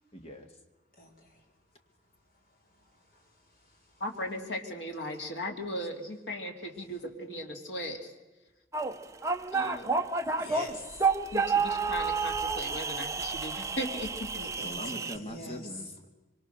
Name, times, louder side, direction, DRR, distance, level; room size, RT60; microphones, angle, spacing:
voice 1, 0.1-0.5 14.6-16.1, equal, 35° left, 2.1 m, -42 dB
voice 2, 1.0-1.4 3.1-3.3 3.6-3.8 10.4-11.1 14.3-15.9, left 1 dB, 55° left, 4.8 m, -44 dB
voice 3, 4.0-8.1 9.5-10.0 11.3-14.3 14.6-14.9 15.2-15.4, left 1 dB, 90° left, 3.2 m, -37 dB
sound 1, 8.7-15.2, right 4 dB, 15° right, 0.9 m, -30 dB
24.5 x 24.5 x 6.7 m
head